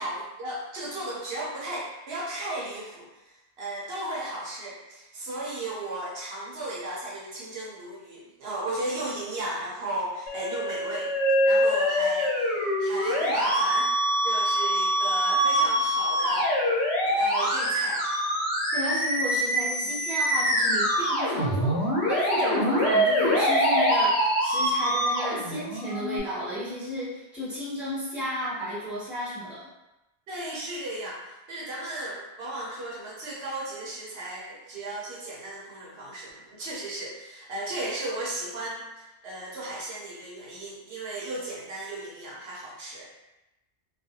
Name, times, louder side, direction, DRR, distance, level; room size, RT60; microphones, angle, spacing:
voice 1, 0.0-11.1 11.4-16.5 17.0-18.0 30.3-43.1, right 1 dB, 70° right, -5 dB, 0.8 m, -35 dB
Musical instrument, 10.3-26.2, equal, 80° left, 1.0 m, -24 dB
voice 2, 18.7-29.7, equal, ahead, -9 dB, 0.7 m, -33 dB
2.4 x 2.2 x 2.7 m, 0.97 s
omnidirectional pair, 1.1 m